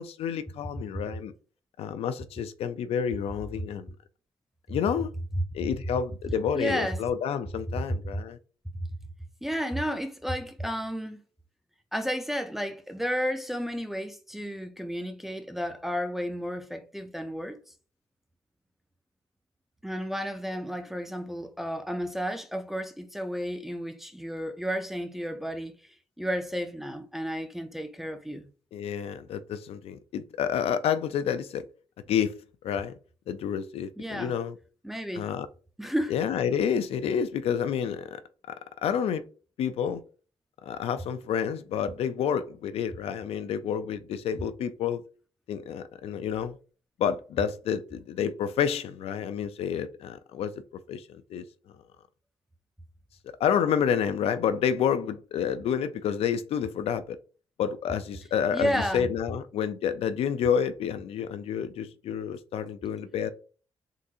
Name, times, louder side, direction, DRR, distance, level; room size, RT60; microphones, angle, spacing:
voice 1, 0.0-1.3 1.8-3.9 4.7-5.1 5.5-8.4 28.7-31.6 32.1-32.3 32.6-32.9 33.3-34.6 35.1-35.5 36.1-38.2 38.5-38.6 38.8-39.2 39.6-40.0 40.7-45.0 45.5-46.6 47.0-50.5 50.9-51.4 53.4-57.2 57.6-63.3, left 8 dB, 75° left, 0.4 m, -29 dB
voice 2, 6.5-7.0 8.7-8.9 9.4-11.2 11.9-17.6 19.8-25.7 26.2-28.5 34.0-34.4 34.8-35.3 35.8-36.1 58.5-59.1, equal, 5° right, 0.3 m, -32 dB
3.8 x 2.4 x 2.7 m
wide cardioid pair, 170°, 10 cm